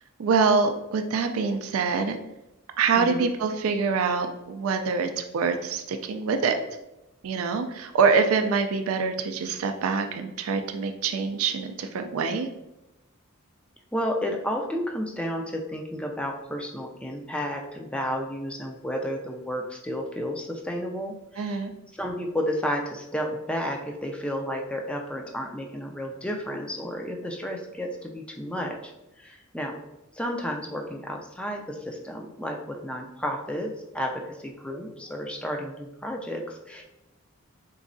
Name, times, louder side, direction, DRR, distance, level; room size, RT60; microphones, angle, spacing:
voice 1, 0.2-2.2 2.8-6.6 7.2-12.5 21.4-21.7, right 5 dB, 80° right, 6 dB, 0.4 m, -25 dB
voice 2, 3.0-3.3 13.9-21.7 22.0-28.9 29.2-29.8 30.1-36.8, equal, 5° left, 2 dB, 0.3 m, -32 dB
3.5 x 3.1 x 2.5 m, 0.93 s
head